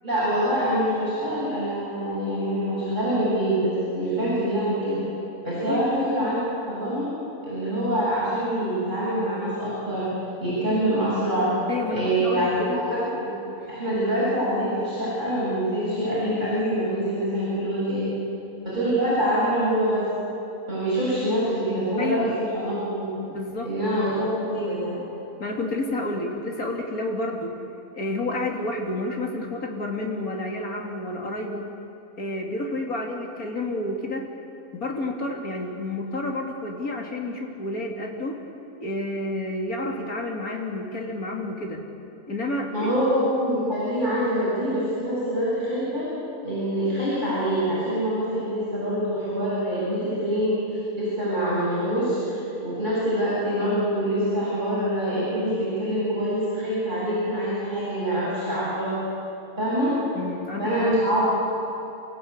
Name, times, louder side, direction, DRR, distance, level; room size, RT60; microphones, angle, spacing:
voice 1, 0.0-5.0 5.4-6.4 6.7-7.1 7.4-10.1 10.4-11.5 11.9-12.9 13.1-13.3 13.7-18.1 18.6-20.0 20.7-23.2 23.6-25.0 42.7-46.0 46.4-50.6 50.9-59.0 59.6-59.9 60.6-61.3, equal, 30° right, -11 dB, 8.3 m, -25 dB
voice 2, 11.7-12.8 13.6-13.7 22.0-22.4 23.3-23.7 25.4-27.6 27.9-31.7 32.2-34.3 34.7-38.4 38.8-41.8 42.3-42.9 60.1-60.9, left 2 dB, 70° left, 1 dB, 3.1 m, -30 dB
28.5 x 15.5 x 8.7 m, 2.9 s
omnidirectional pair, 1.6 m